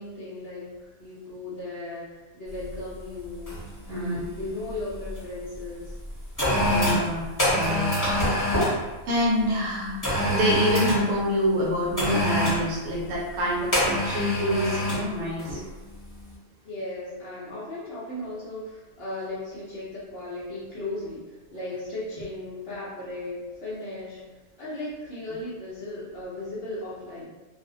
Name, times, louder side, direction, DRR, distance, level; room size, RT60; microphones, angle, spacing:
voice 1, 0.0-3.6 3.8-6.0 16.6-24.2 24.6-27.2, left 2 dB, 55° left, -8 dB, 0.7 m, -36 dB
sound 1, 2.6-2.8 3.5-3.7 4.0-5.2 5.9-8.8 10.0-11.1 12.0-12.7 13.7-15.1 15.4-15.6, equal, 15° left, 0.7 m, -25 dB
voice 2, 3.9-4.2 6.6-7.9 9.1-10.0 10.3-15.6, left 1 dB, 70° right, -4 dB, 0.9 m, -27 dB
2.6 x 2.1 x 2.6 m, 1.2 s
omnidirectional pair, 1.5 m